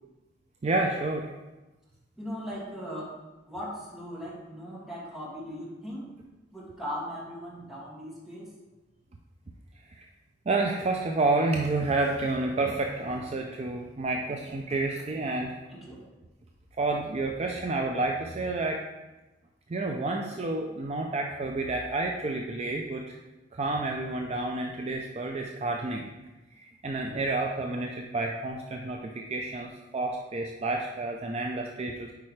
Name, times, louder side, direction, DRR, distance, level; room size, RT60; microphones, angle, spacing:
voice 1, 0.6-1.3 9.9-10.1 10.5-15.5 16.8-18.8 19.7-23.2 23.5-26.1 26.6-32.1, right 2 dB, 35° right, 2 dB, 0.4 m, -30 dB
voice 2, 2.2-3.1 3.5-6.1 6.5-8.5 15.7-16.0, equal, ahead, -8 dB, 2.1 m, -38 dB
8.5 x 4.6 x 3.2 m, 1.1 s
head